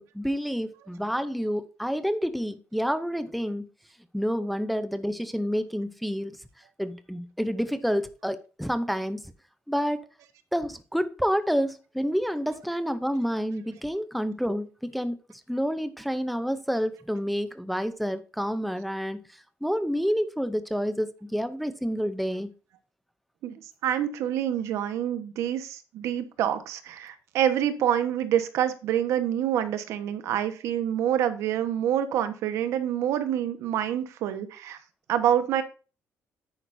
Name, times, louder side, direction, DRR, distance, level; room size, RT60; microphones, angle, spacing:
voice 1, 0.0-3.6 4.1-6.4 6.8-9.2 9.7-10.1 10.5-15.2 15.5-22.5, equal, ahead, 0.6 m, -29 dB
voice 2, 23.8-34.8 35.1-35.6, right 10 dB, 75° right, 1.2 m, -27 dB
10.0 x 9.0 x 2.6 m
cardioid pair, 165°, 5 cm